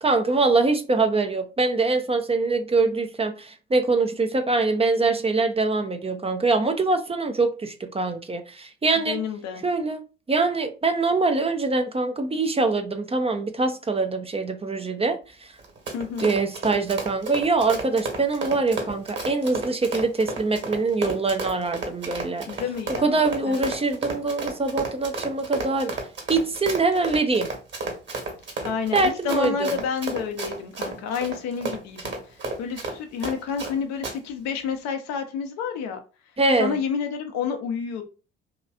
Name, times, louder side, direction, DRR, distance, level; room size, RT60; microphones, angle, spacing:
voice 1, 0.0-9.2 9.6-10.0 10.3-15.2 16.2-22.5 23.0-25.9 26.3-27.5 28.9-29.7 36.4-36.8, right 3 dB, 20° right, 0.6 m, -23 dB
voice 2, 9.0-9.6 15.9-16.3 22.5-23.7 28.6-32.2 32.6-36.0 36.6-38.0, left 6 dB, 65° left, 0.8 m, -29 dB
Run, 15.6-33.7 34.0-34.2, right 3 dB, 40° right, 1.6 m, -32 dB
3.1 x 2.8 x 2.6 m
hypercardioid pair, 50°, 29 cm